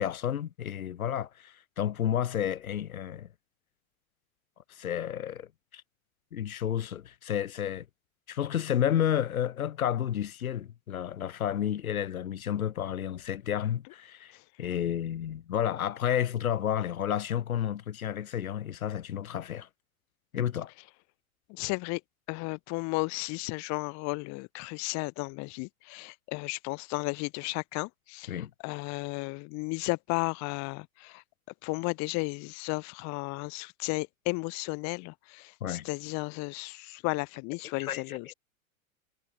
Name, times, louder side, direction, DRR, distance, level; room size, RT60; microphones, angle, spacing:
voice 1, 0.0-3.3 4.7-5.8 6.3-7.9 8.3-19.7 20.3-20.7 28.3-28.5 35.6-35.9 37.8-38.3, left 10 dB, 75° left, 2.3 m, -31 dB
voice 2, 21.5-22.0 22.3-31.2 31.6-38.3, left 28 dB, 40° left, 1.5 m, -34 dB
hypercardioid pair, 110°, 42 cm